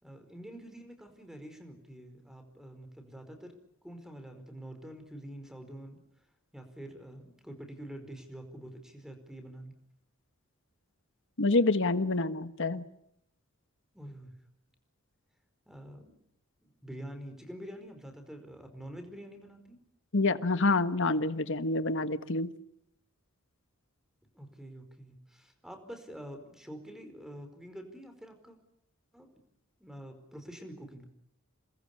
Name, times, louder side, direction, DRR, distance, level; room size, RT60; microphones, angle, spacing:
voice 1, 0.0-3.5 3.8-6.0 6.5-9.7 13.9-14.3 15.7-16.1 16.6-19.8 24.3-28.6 29.1-29.3 29.8-31.0, right 1 dB, ahead, 7 dB, 4.7 m, -46 dB
voice 2, 11.4-12.8 20.1-22.5, left 3 dB, 60° left, 11 dB, 1.4 m, -27 dB
29.0 x 21.5 x 8.5 m, 0.75 s
head